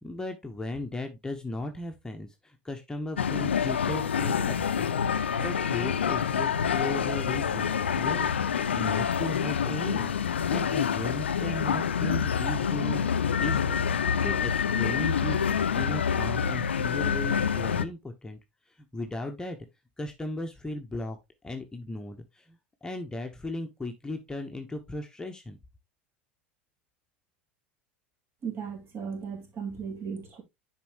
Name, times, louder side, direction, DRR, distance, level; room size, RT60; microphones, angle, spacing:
voice 1, 0.0-10.2 10.5-13.1 13.4-18.4 18.7-19.6 20.0-21.2 21.4-25.6, left 2 dB, 10° left, 1.1 m, -36 dB
sound 1, 3.2-17.8, left 7 dB, 80° left, 0.5 m, -27 dB
voice 2, 28.4-30.4, right 6 dB, 40° right, 2.9 m, -36 dB
10.5 x 4.5 x 3.0 m
figure-of-eight pair, 75°, 6 cm